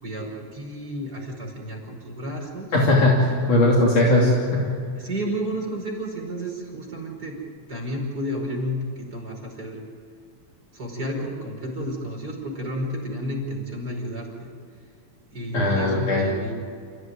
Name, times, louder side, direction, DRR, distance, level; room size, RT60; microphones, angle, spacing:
voice 1, 0.0-2.8 4.0-4.3 5.0-7.4 7.7-9.8 10.7-14.5 15.3-16.5, equal, 25° right, -1 dB, 5.5 m, -31 dB
voice 2, 2.7-4.6 15.5-16.3, left 1 dB, 65° left, -3 dB, 4.3 m, -19 dB
29.0 x 16.5 x 9.5 m, 2.4 s
omnidirectional pair, 3.9 m